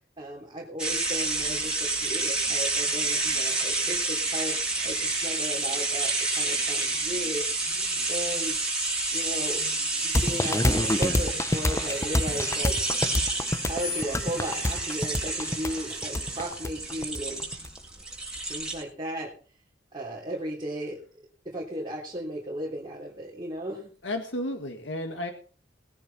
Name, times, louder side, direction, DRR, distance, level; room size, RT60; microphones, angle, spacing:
voice 1, 0.2-7.4 8.1-8.7 9.1-9.6 10.0-12.8 13.7-17.5 18.5-19.3 19.9-21.0 21.4-23.9, right 1 dB, 25° right, -4 dB, 3.2 m, -35 dB
sound 1, 0.8-18.8, right 2 dB, 5° right, 6.8 m, -29 dB
sound 2, 10.1-17.7, left 1 dB, 15° left, 0.6 m, -27 dB
voice 2, 24.0-25.3, left 1 dB, 90° left, 5 dB, 1.6 m, -32 dB
20.0 x 10.0 x 4.1 m, 0.40 s
head